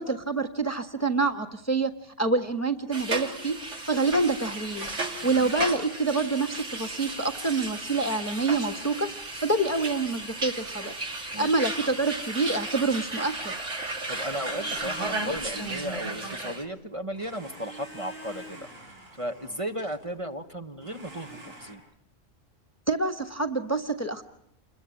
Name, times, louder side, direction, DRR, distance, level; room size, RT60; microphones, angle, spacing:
voice 1, 0.0-1.9 2.2-3.6 3.9-4.9 5.2-9.1 9.4-10.9 11.4-13.5 22.9-24.2, right 3 dB, 15° left, 6 dB, 1.2 m, -27 dB
sound 1, 2.9-16.6, right 2 dB, 65° right, 3.0 m, -34 dB
Domestic sounds home sounds, 11.8-13.4 14.0-16.8 17.1-20.2 20.8-21.7, right 1 dB, 85° right, 6.5 m, -47 dB
voice 2, 14.1-18.7 19.1-21.8, equal, 25° right, 4 dB, 1.3 m, -35 dB
28.5 x 22.0 x 8.5 m, 0.73 s
omnidirectional pair, 1.3 m